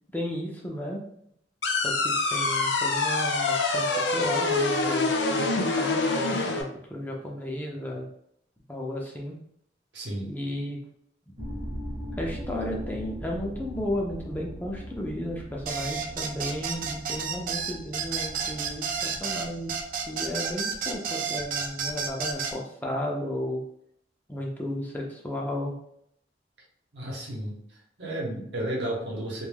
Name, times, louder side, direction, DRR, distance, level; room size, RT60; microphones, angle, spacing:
voice 1, 0.1-1.0 1.8-8.1 8.7-9.3 10.3-10.8 12.1-19.8 20.1-23.6 24.3-25.7, left 1 dB, 10° left, -2 dB, 0.4 m, -34 dB
sound 1, 1.6-6.6, left 3 dB, 85° left, 0.5 m, -25 dB
voice 2, 9.9-10.3 26.9-29.5, right 1 dB, 80° right, -2 dB, 0.9 m, -33 dB
sound 2, 11.4-20.3, equal, 35° right, 0.7 m, -40 dB
sound 3, 15.7-22.6, right 6 dB, 50° right, 0.4 m, -31 dB
2.2 x 2.2 x 3.3 m, 0.70 s
head